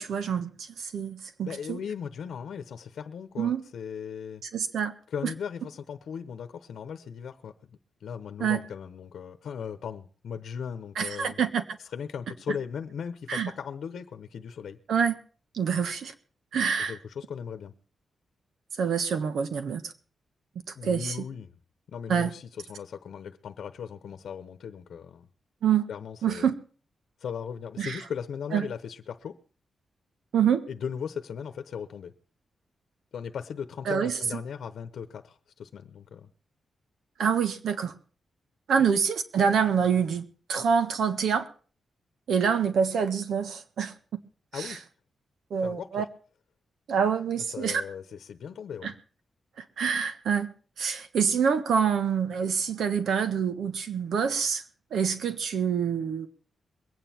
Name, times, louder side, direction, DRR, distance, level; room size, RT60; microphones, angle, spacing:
voice 1, 0.0-1.8 3.4-3.6 4.5-4.9 8.4-8.6 11.0-11.6 13.3-13.5 14.9-15.2 15.5-16.1 16.5-16.9 18.8-19.9 20.8-21.2 22.1-22.3 25.6-25.9 26.2-26.6 27.8-28.0 28.5-28.6 30.3-30.6 33.9-34.2 37.2-37.9 38.7-41.5 42.3-43.9 44.5-44.8 45.5-46.0 46.9-47.8 48.8-48.9 49.6-50.5 50.8-54.6 54.9-56.3, right 7 dB, 75° right, 10 dB, 1.4 m, -26 dB
voice 2, 1.4-4.4 5.1-7.5 8.0-11.4 11.9-14.8 16.9-17.7 20.7-21.5 21.9-25.3 25.9-26.5 27.2-29.4 30.7-32.1 33.1-36.3 44.5-44.8 45.6-46.1 47.5-48.9, left 7 dB, 70° left, 9 dB, 1.0 m, -37 dB
22.5 x 9.3 x 4.3 m, 0.39 s
wide cardioid pair, 160°, 0 cm